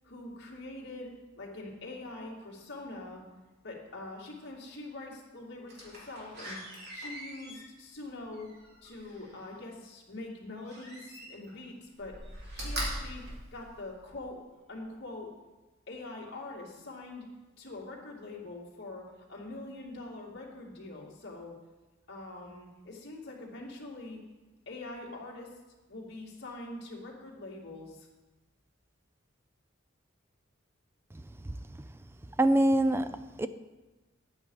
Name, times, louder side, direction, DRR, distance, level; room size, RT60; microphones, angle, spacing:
voice 1, 0.0-3.2 3.6-6.6 6.9-8.5 8.8-12.2 12.5-13.2 13.5-14.4 14.7-15.3 15.9-17.3 17.6-21.5 22.1-24.2 24.7-25.6 25.9-28.1, left 2 dB, 60° left, 2.5 m, -44 dB
Slam, 5.7-9.5 10.6-11.6 11.9-14.2 14.7-14.8, right 1 dB, 55° right, 3.3 m, -41 dB
voice 2, 32.4-33.5, right 1 dB, 10° right, 0.4 m, -25 dB
10.5 x 8.8 x 5.5 m
head